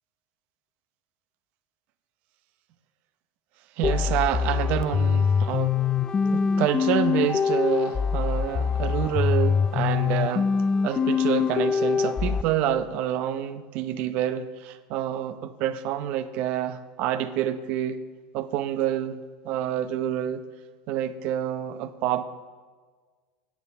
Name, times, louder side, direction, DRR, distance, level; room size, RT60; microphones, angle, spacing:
sound 1, 3.8-12.4, left 6 dB, 25° left, 0.4 m, -24 dB
voice 1, 3.8-5.8 6.3-10.5 10.8-18.0 18.3-20.4 20.9-22.2, right 11 dB, 60° right, 12 dB, 0.7 m, -28 dB
9.5 x 8.4 x 6.8 m, 1.5 s
hypercardioid pair, 90°, 3 cm